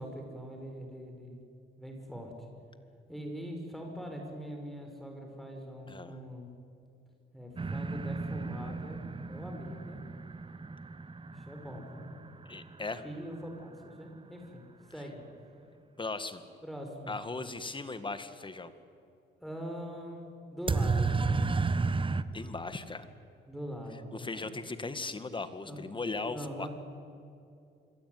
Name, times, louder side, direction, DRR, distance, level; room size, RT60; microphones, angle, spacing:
voice 1, 0.0-1.4 1.8-2.3 3.1-6.5 7.3-10.0 11.3-12.1 13.0-15.2 16.6-17.2 19.4-21.2 23.5-24.5 25.6-25.8 26.3-26.7, equal, ahead, 2 dB, 5.7 m, -42 dB
sound 1, 7.6-13.3 20.7-22.2, right 4 dB, 25° right, 1.1 m, -33 dB
voice 2, 12.5-13.0 16.0-16.4 17.1-18.7 22.3-23.1 24.1-26.7, left 3 dB, 25° left, 11 dB, 1.9 m, -38 dB
26.5 x 21.5 x 9.5 m, 2.5 s
cardioid pair, 90°, 20 cm